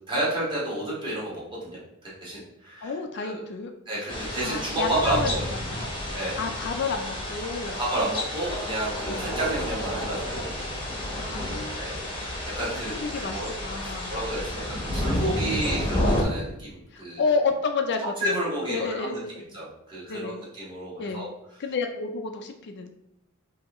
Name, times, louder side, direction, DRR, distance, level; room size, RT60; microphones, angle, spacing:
voice 1, 0.1-2.9 3.2-3.4 3.9-5.5 6.1-6.4 7.8-10.5 11.8-12.0 12.6-13.5 13.8-17.2 18.2-19.2 19.5-21.3, right 1 dB, 25° right, -7 dB, 1.6 m, -31 dB
voice 2, 2.8-3.7 4.4-5.3 5.8-5.9 6.2-7.8 9.1-9.4 10.9-11.8 12.9-14.1 16.9-18.4 18.7-19.6 20.1-20.4 21.0-21.3 21.6-22.9, left 4 dB, 55° left, 5 dB, 0.4 m, -30 dB
sound 1, 4.1-16.2, left 1 dB, 25° left, 0.8 m, -31 dB
5.3 x 2.8 x 3.0 m, 0.81 s
head